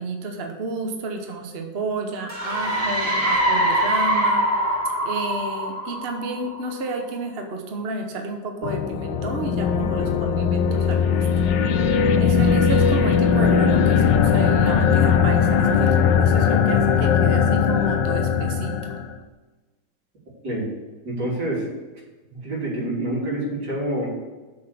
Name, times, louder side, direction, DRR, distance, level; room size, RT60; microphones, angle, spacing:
voice 1, 0.0-4.4 5.0-11.4 11.9-18.9, right 3 dB, 40° right, 3 dB, 1.0 m, -31 dB
sound 1, 2.3-6.9, equal, 20° right, 1.5 m, -23 dB
sound 2, 8.6-19.1, left 6 dB, 90° left, 1.4 m, -19 dB
voice 2, 21.0-21.7 22.3-24.1, right 1 dB, 70° right, -5 dB, 3.9 m, -27 dB
6.7 x 6.3 x 6.9 m, 1.2 s
omnidirectional pair, 1.9 m